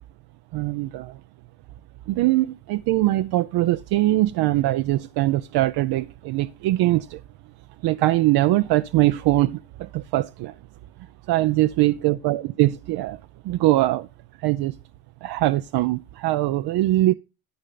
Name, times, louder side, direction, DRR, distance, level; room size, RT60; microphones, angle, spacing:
voice 1, 0.5-1.2 2.1-7.2 7.8-10.5 11.3-13.2 13.4-14.1 14.4-14.7 15.2-17.1, right 17 dB, 55° right, 0.6 m, -22 dB
13.0 x 5.4 x 4.0 m
hypercardioid pair, 60°, 46 cm